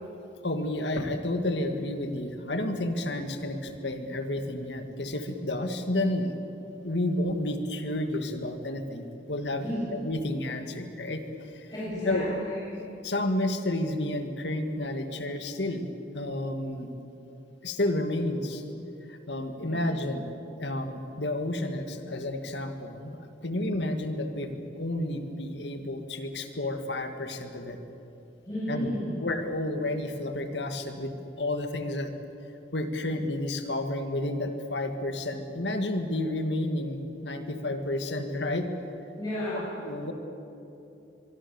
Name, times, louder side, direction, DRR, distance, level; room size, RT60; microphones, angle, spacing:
voice 1, 0.4-6.3 6.8-9.6 9.9-11.7 12.1-12.3 13.0-16.9 17.6-18.6 19.1-20.3 20.6-27.8 28.7-28.9 29.2-32.1 32.7-38.7 39.8-40.1, left 1 dB, 80° left, 6 dB, 2.0 m, -31 dB
voice 2, 9.6-9.9 11.7-12.9 19.6-19.8 28.4-29.2 39.2-39.7, equal, 25° left, -9 dB, 8.0 m, -33 dB
24.5 x 24.0 x 7.1 m, 2.9 s
head